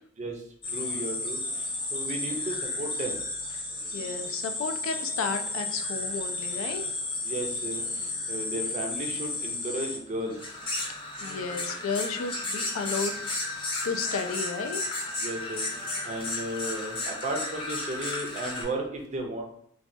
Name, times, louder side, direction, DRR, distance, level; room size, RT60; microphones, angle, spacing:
sound 1, 0.6-18.6, left 2 dB, 25° left, 0.7 m, -33 dB
voice 1, 0.7-1.4 1.9-3.2 7.2-7.8 8.3-10.5 15.2-15.6 16.0-19.4, right 1 dB, 35° right, 2 dB, 0.5 m, -34 dB
voice 2, 3.9-6.8 11.2-13.1 13.6-14.8, left 5 dB, 70° left, 6 dB, 0.3 m, -33 dB
3.1 x 2.2 x 2.6 m, 0.71 s
head